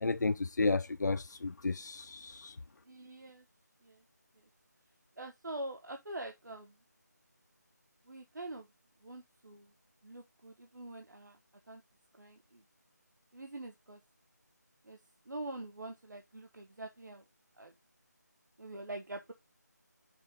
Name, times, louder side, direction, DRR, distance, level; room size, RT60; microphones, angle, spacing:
voice 1, 0.0-2.6, left 3 dB, 75° left, 0.5 m, -32 dB
voice 2, 2.8-3.4 3.8-4.0 4.3-4.5 5.2-6.8 8.1-8.7 9.0-9.7 10.0-11.4 11.7-11.8 12.2-12.6 13.3-14.0 14.8-15.0 15.2-17.2 17.6-17.7 18.6-19.3, right 2 dB, 80° right, 1.2 m, -45 dB
6.1 x 5.3 x 5.1 m
figure-of-eight pair, 175°, 10 cm